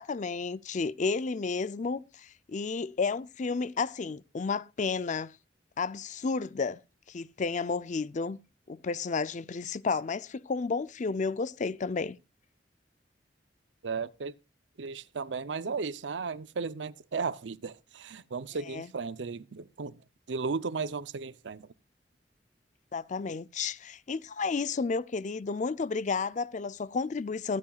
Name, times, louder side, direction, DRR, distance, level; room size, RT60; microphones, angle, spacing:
voice 1, 0.0-5.3 5.8-6.8 7.1-8.4 8.7-12.2 18.7-18.9 22.9-27.6, left 4 dB, 45° left, 0.5 m, -32 dB
voice 2, 13.8-14.3 14.8-20.0 20.3-21.7, right 4 dB, 80° right, 0.6 m, -35 dB
23.5 x 8.5 x 2.4 m
head